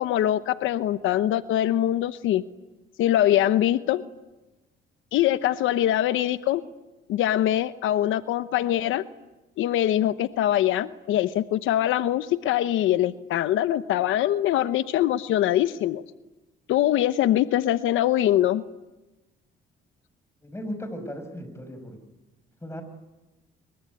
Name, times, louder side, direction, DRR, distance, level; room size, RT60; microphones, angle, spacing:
voice 1, 0.0-2.4 3.0-4.0 5.1-6.6 7.1-9.0 9.6-16.0 16.7-18.6, left 12 dB, 85° left, 13 dB, 0.9 m, -23 dB
voice 2, 20.4-22.0 22.6-22.8, equal, 15° left, 9 dB, 6.0 m, -36 dB
26.0 x 23.0 x 9.6 m, 1.1 s
cardioid pair, 90°, 20 cm